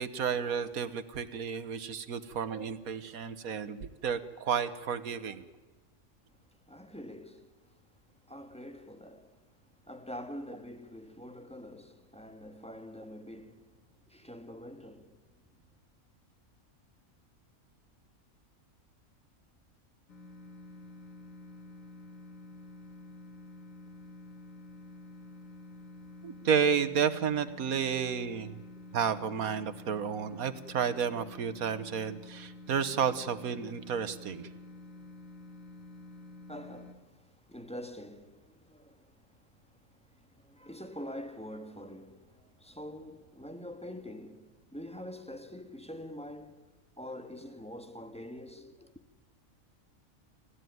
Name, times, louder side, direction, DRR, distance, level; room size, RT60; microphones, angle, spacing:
voice 1, 0.0-5.4 26.2-28.6 28.9-34.5, right 7 dB, 90° right, 1.6 m, -31 dB
voice 2, 6.7-7.5 8.3-9.5 9.9-15.2 36.5-39.4 39.9-46.7 47.0-48.9, left 1 dB, 5° left, 1.5 m, -45 dB
sound 1, 20.1-36.9, left 2 dB, 65° left, 3.2 m, -49 dB
30.0 x 13.5 x 9.4 m
omnidirectional pair, 1.5 m